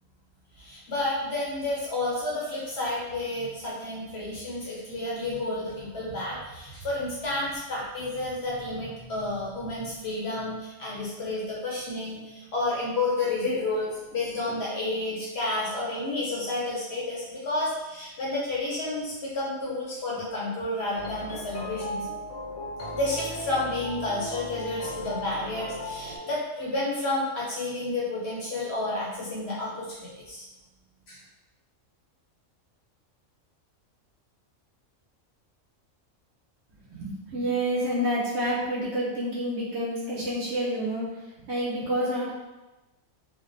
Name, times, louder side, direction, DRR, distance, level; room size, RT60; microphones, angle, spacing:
voice 1, 0.6-22.1 22.9-30.5 31.1-31.2, left 2 dB, 60° left, -5 dB, 0.8 m, -31 dB
sound 1, 21.0-26.2, left 1 dB, 90° left, 1.0 m, -36 dB
voice 2, 36.9-41.1 41.4-42.3, equal, 65° right, -5 dB, 0.8 m, -28 dB
2.5 x 2.1 x 2.5 m, 1.1 s
omnidirectional pair, 1.4 m